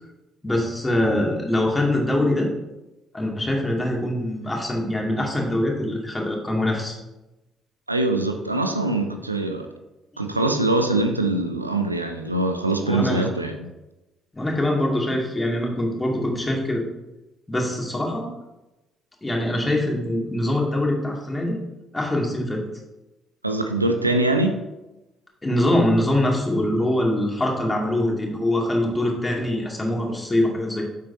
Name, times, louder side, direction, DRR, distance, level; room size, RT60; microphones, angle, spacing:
voice 1, 0.4-2.5 3.1-6.9 12.8-13.3 14.3-16.8 17.5-18.3 19.2-21.6 21.9-22.6 25.4-30.8, left 1 dB, 20° left, -1 dB, 2.4 m, -23 dB
voice 2, 7.9-9.7 10.2-13.7 23.4-24.6, right 2 dB, 90° right, 6 dB, 0.5 m, -23 dB
9.8 x 7.5 x 2.8 m, 0.99 s
figure-of-eight pair, 45°, 0 cm